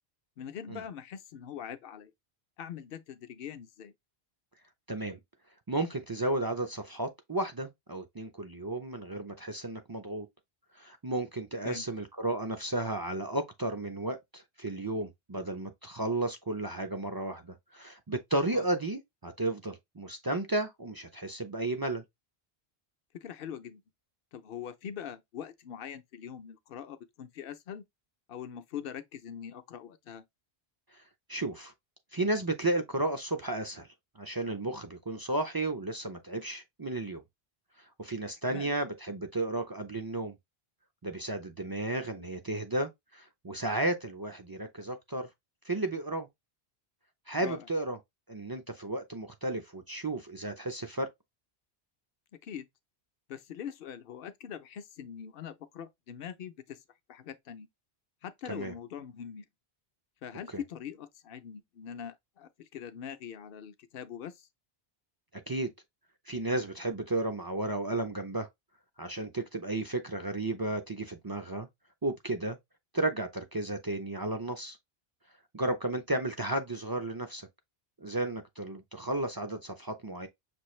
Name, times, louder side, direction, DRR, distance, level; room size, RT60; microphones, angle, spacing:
voice 1, 0.4-2.1 2.6-3.9 11.6-11.9 18.5-18.7 23.1-23.8 24.3-27.9 28.3-30.2 38.5-38.7 47.4-47.7 52.4-52.7 53.3-56.8 57.1-57.7 58.2-59.5 60.2-64.5, left 8 dB, 65° left, 0.8 m, -42 dB
voice 2, 4.9-5.2 5.7-10.3 10.8-22.0 31.3-31.7 32.1-33.9 34.2-37.2 38.0-40.4 41.0-45.3 45.7-46.3 47.3-48.0 48.3-51.1 58.5-58.7 65.3-65.7 66.3-68.5 69.0-71.7 72.0-72.6 72.9-74.8 75.5-77.5 78.0-80.3, right 2 dB, 35° right, 0.3 m, -33 dB
6.0 x 2.5 x 3.1 m
omnidirectional pair, 1.1 m